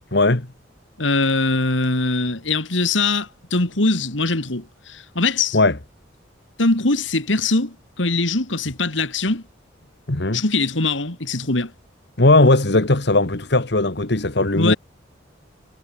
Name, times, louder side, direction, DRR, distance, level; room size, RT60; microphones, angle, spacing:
voice 1, 0.1-0.5 5.5-5.7 10.1-10.4 12.2-14.7, left 2 dB, 60° left, 1.8 m, -17 dB
voice 2, 1.0-5.6 6.6-9.4 10.3-11.7 14.5-14.8, left 3 dB, 90° left, 2.8 m, -22 dB
head